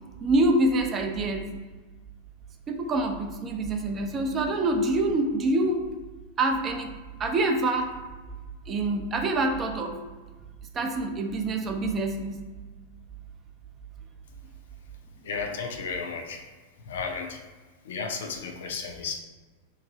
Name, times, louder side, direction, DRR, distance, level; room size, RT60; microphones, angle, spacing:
voice 1, 0.2-1.5 2.7-5.8 6.4-6.9 7.2-7.9 8.7-10.0 10.7-12.4, right 2 dB, 25° right, 4 dB, 0.5 m, -26 dB
voice 2, 15.2-16.4 16.8-17.4 17.8-19.2, left 5 dB, 60° left, 3 dB, 0.5 m, -33 dB
3.1 x 2.5 x 3.8 m, 1.3 s
figure-of-eight pair, 90°, 0 cm